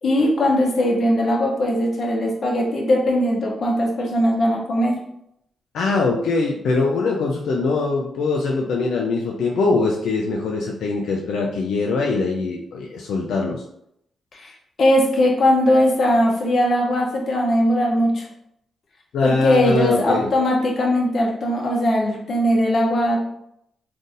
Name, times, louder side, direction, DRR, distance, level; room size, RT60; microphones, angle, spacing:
voice 1, 0.0-4.9 14.3-18.3 19.2-23.2, left 1 dB, 55° left, -2 dB, 0.8 m, -19 dB
voice 2, 5.7-13.6 19.1-20.3, left 3 dB, 85° left, -1 dB, 0.4 m, -22 dB
3.8 x 2.6 x 2.5 m, 0.76 s
cardioid pair, 80°, 0 cm